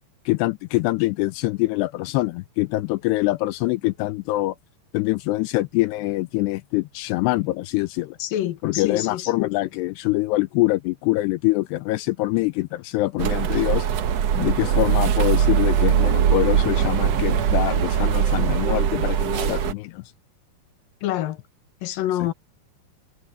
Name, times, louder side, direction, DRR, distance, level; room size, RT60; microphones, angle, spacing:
voice 1, 0.3-4.6 4.9-8.2 8.6-13.9 14.4-20.0, left 19 dB, 85° left, 2.8 m, -24 dB
voice 2, 8.2-9.5 21.0-21.4 21.8-22.3, left 13 dB, 65° left, 3.0 m, -27 dB
sound 1, 13.2-19.7, right 8 dB, 85° right, 1.4 m, -21 dB
omnidirectional pair, 4.8 m